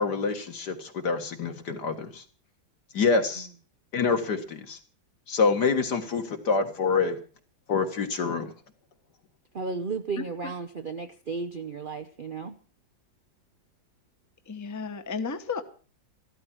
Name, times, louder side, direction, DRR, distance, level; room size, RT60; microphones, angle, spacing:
voice 1, 0.0-2.2 2.9-3.5 3.9-4.8 5.3-7.2 7.7-8.5, left 4 dB, 60° left, 6 dB, 2.2 m, -26 dB
voice 2, 9.5-12.5, right 4 dB, 85° right, 9 dB, 0.4 m, -34 dB
voice 3, 10.2-10.5 14.5-15.6, left 5 dB, 15° left, 8 dB, 0.8 m, -34 dB
13.5 x 13.0 x 6.1 m, 0.40 s
omnidirectional pair, 2.0 m